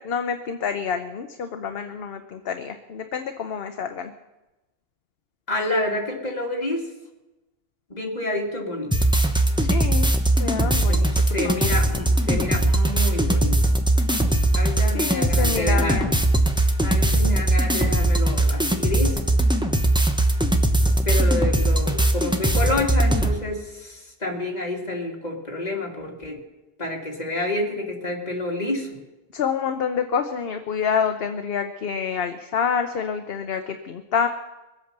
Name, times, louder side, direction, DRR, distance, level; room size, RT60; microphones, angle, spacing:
voice 1, 0.0-4.1 9.6-11.1 11.4-11.7 14.9-16.2 29.3-34.3, left 6 dB, 65° left, 7 dB, 1.0 m, -27 dB
voice 2, 5.5-6.8 7.9-8.9 10.9-13.6 14.5-16.1 16.8-19.2 21.0-26.4 26.8-28.9, left 1 dB, 40° left, -1 dB, 2.6 m, -28 dB
sound 1, 8.9-23.4, right 1 dB, 5° right, 1.0 m, -20 dB
22.0 x 8.4 x 6.7 m, 1.1 s
omnidirectional pair, 1.1 m